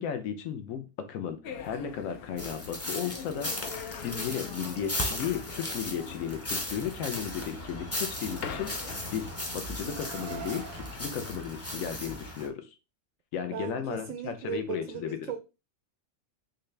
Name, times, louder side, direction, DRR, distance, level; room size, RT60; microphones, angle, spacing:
voice 1, 0.0-12.7 13.3-15.2, left 8 dB, 90° left, 1.1 m, -35 dB
sound 1, 1.4-11.1, left 6 dB, 65° left, 0.6 m, -44 dB
sound 2, 2.4-12.5, left 1 dB, 20° left, 0.4 m, -37 dB
Car, 8.7-11.0, right 6 dB, 60° right, 0.6 m, -46 dB
voice 2, 13.5-15.4, right 10 dB, 90° right, 1.0 m, -37 dB
4.0 x 2.7 x 3.2 m
omnidirectional pair, 1.4 m